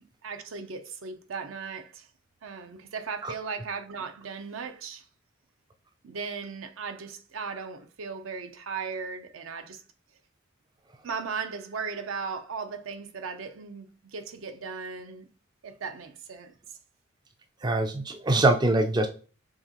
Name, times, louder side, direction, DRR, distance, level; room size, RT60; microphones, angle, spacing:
voice 1, 0.2-2.1 2.4-5.1 6.0-9.8 11.0-15.3 15.6-16.5, right 5 dB, 70° right, 0.5 m, -37 dB
voice 2, 17.6-19.1, right 2 dB, 20° right, 0.3 m, -23 dB
4.8 x 2.8 x 2.8 m
head